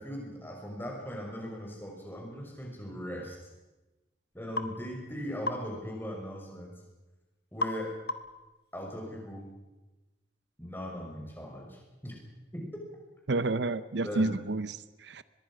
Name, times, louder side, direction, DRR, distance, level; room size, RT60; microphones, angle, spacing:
voice 1, 0.0-3.4 4.3-6.7 7.5-7.9 8.7-9.5 10.6-12.2 12.5-12.6 14.0-14.4, equal, 10° left, 0 dB, 5.9 m, -39 dB
sound 1, 4.6-4.7 5.5-5.7 7.6-7.8 8.1-8.4, left 2 dB, 55° left, 1.3 m, -33 dB
voice 2, 13.3-15.2, right 2 dB, 70° right, 16 dB, 0.7 m, -30 dB
24.0 x 21.0 x 6.4 m, 1.1 s
head